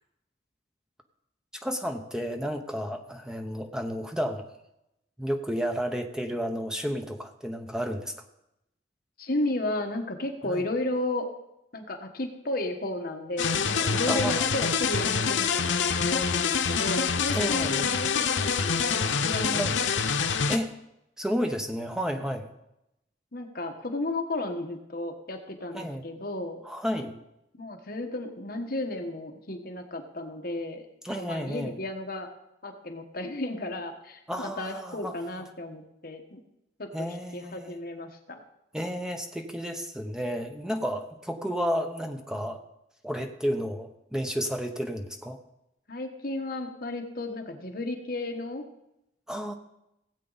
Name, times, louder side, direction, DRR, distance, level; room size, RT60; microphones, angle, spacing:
voice 1, 1.5-4.5 5.2-8.1 10.5-10.6 14.1-14.5 17.3-17.9 19.6-19.8 20.5-20.7 21.2-22.5 25.7-26.0 26.7-27.1 31.0-31.8 34.3-35.1 36.9-37.8 38.7-42.6 43.0-45.4 49.3-49.5, equal, 5° right, 5 dB, 0.9 m, -31 dB
voice 2, 9.2-11.3 11.7-19.8 23.3-26.6 27.5-30.8 31.1-32.3 32.6-36.4 36.8-38.4 45.9-48.6, left 2 dB, 55° left, 4 dB, 1.3 m, -33 dB
sound 1, 13.4-20.6, left 6 dB, 90° left, 0.8 m, -26 dB
17.0 x 8.2 x 4.1 m, 0.85 s
head